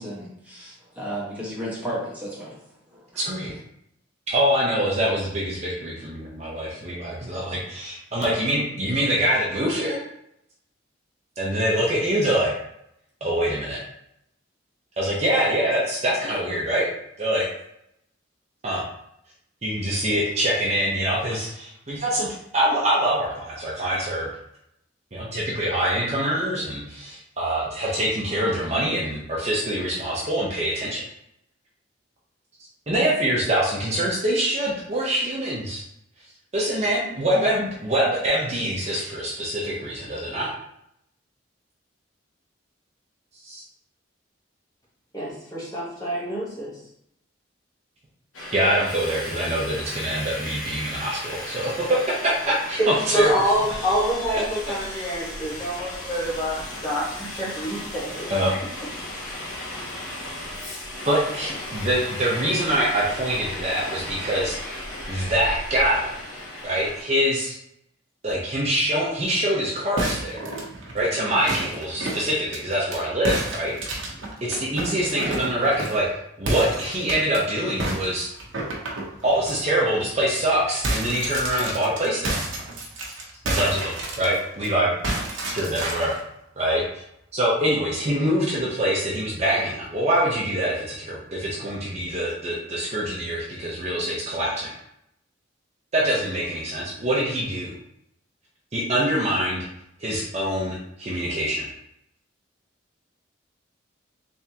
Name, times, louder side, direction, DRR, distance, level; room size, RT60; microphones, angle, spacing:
voice 1, 0.0-2.5, equal, 10° right, -7 dB, 1.2 m, -33 dB
voice 2, 3.2-3.5 4.3-10.0 11.4-12.5 13.2-13.8 15.0-16.9 17.2-17.5 18.6-18.8 19.6-22.3 22.5-24.3 25.1-31.0 32.9-35.8 36.5-40.5 43.4-43.6 48.5-51.7 52.1-53.3 54.9-55.1 58.3-58.5 61.1-64.6 65.1-66.2 66.6-67.6 68.2-70.4 70.9-73.8 74.4-76.0 76.4-78.3 79.2-82.4 83.4-84.9 85.5-86.1 86.6-87.0 87.3-94.7 95.9-97.7 98.7-99.6 100.0-101.7, right 1 dB, 35° right, -5 dB, 0.8 m, -24 dB
voice 3, 45.1-46.8 52.8-58.3, equal, 20° left, -7 dB, 1.2 m, -26 dB
Subway metro underground, 48.3-67.0, left 1 dB, 90° left, 1.3 m, -35 dB
sound 1, 70.0-73.0 73.2-76.1 76.4-77.4 77.8-79.5 80.0-80.1 80.4-84.7 85.0-86.2, right 2 dB, 80° right, 0.9 m, -30 dB
3.6 x 3.5 x 2.8 m, 0.76 s
head